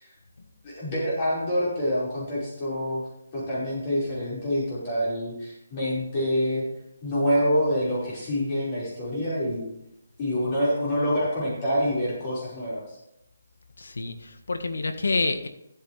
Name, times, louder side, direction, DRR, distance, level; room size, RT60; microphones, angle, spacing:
voice 1, 0.6-3.1 3.3-6.6 7.0-9.7 10.2-12.8, equal, 30° left, -7 dB, 5.3 m, -26 dB
voice 2, 13.8-15.5, left 3 dB, 80° left, 7 dB, 1.6 m, -28 dB
14.5 x 9.4 x 3.4 m, 0.80 s
hypercardioid pair, 160°, 0 cm